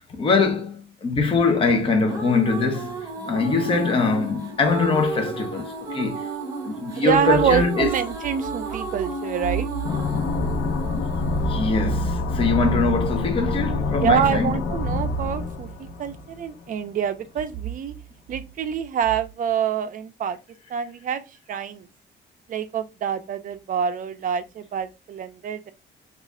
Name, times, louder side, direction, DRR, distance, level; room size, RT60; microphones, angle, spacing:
voice 1, 0.0-6.3 6.6-7.9 10.9-11.1 11.4-14.5, left 4 dB, 25° left, 0.6 m, -23 dB
sound 1, 1.7-12.8, right 3 dB, 15° right, 0.9 m, -33 dB
voice 2, 7.0-9.7 14.0-17.9 18.3-20.4 20.7-21.2 21.5-21.9 22.5-25.7, right 8 dB, 45° right, 0.5 m, -26 dB
sound 2, 9.8-16.4, left 2 dB, 65° left, 0.7 m, -26 dB
3.1 x 2.4 x 3.6 m
cardioid pair, 160°, 20 cm